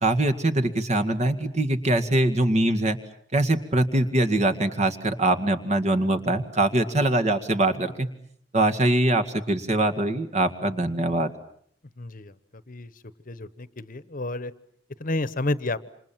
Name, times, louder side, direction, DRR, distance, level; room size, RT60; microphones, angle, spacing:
voice 1, 0.0-3.0 3.3-8.1 8.5-11.3, right 1 dB, 40° right, 9 dB, 2.0 m, -23 dB
voice 2, 12.0-12.3 12.7-12.9 13.3-14.5 15.0-15.9, left 2 dB, 50° left, 15 dB, 1.1 m, -30 dB
28.0 x 27.0 x 7.5 m, 0.66 s
head